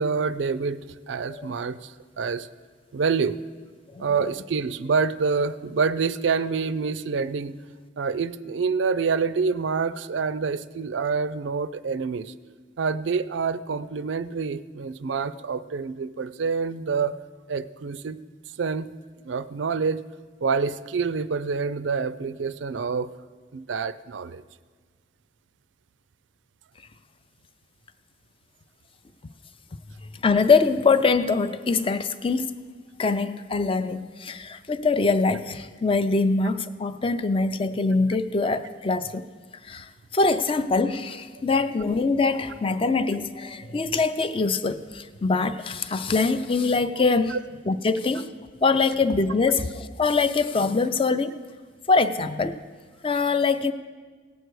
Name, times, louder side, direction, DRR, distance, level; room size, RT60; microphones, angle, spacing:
voice 1, 0.0-2.5 2.9-3.4 4.0-7.6 8.0-12.3 12.8-17.2 17.5-18.2 18.6-18.9 19.2-20.0 20.4-23.1 23.5-24.4 47.3-47.4, right 5 dB, 80° right, 15 dB, 0.4 m, -27 dB
voice 2, 30.2-32.6 33.0-39.2 39.6-47.4 47.7-48.3 48.6-51.4 51.9-52.6 53.0-53.7, left 4 dB, 30° left, 11 dB, 0.4 m, -23 dB
17.5 x 8.0 x 4.7 m, 1.5 s
head